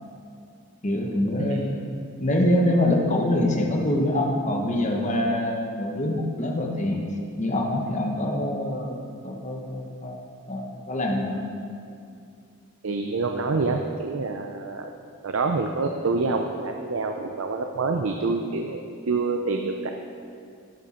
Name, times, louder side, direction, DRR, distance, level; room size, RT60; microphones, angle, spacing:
voice 1, 0.8-1.9 2.2-7.0 7.4-11.4, left 1 dB, 35° left, 0 dB, 1.2 m, -25 dB
voice 2, 12.8-14.9 15.2-19.9, right 3 dB, 70° right, 4 dB, 0.6 m, -27 dB
12.0 x 8.9 x 4.3 m, 2.4 s
head